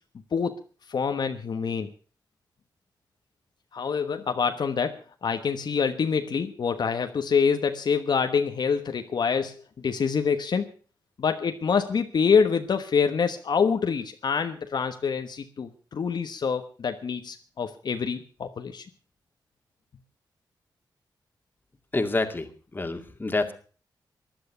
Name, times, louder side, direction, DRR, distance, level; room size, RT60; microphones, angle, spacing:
voice 1, 0.9-1.9 3.7-10.7 11.2-18.9, left 6 dB, 65° left, 6 dB, 1.2 m, -26 dB
voice 2, 21.9-23.5, left 2 dB, 25° left, 6 dB, 2.2 m, -28 dB
15.5 x 11.0 x 6.9 m, 0.41 s
wide cardioid pair, 100°, 8 cm